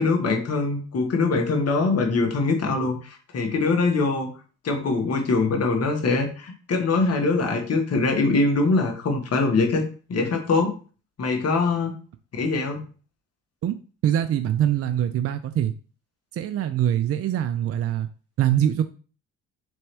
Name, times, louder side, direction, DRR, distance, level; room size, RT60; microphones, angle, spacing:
voice 1, 0.0-4.3 4.6-9.8 10.1-10.7 11.2-12.0 12.3-12.8, left 3 dB, 50° left, 3 dB, 1.5 m, -23 dB
voice 2, 14.0-15.7 16.3-18.1 18.4-18.8, right 11 dB, 45° right, 9 dB, 0.5 m, -23 dB
4.2 x 3.5 x 3.4 m, 0.37 s
supercardioid pair, 75°, 33 cm